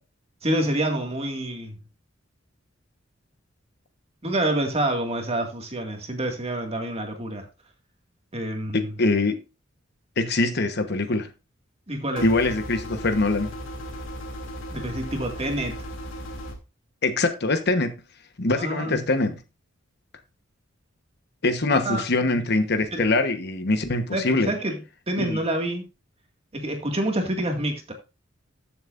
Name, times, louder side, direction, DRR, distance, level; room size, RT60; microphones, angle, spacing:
voice 1, 0.4-1.8 4.2-7.4 8.3-8.9 11.9-12.3 14.7-15.8 18.6-19.0 21.7-22.4 22.9-23.0 24.1-25.8 26.5-27.9, right 1 dB, 30° right, 2.0 m, -27 dB
voice 2, 8.7-9.4 10.2-11.3 12.2-13.5 17.0-18.0 18.4-19.4 21.4-24.5 25.2-25.5, left 2 dB, 55° left, 1.1 m, -23 dB
sound 1, 12.2-16.5, equal, 80° left, 2.7 m, -36 dB
14.0 x 7.2 x 2.6 m
head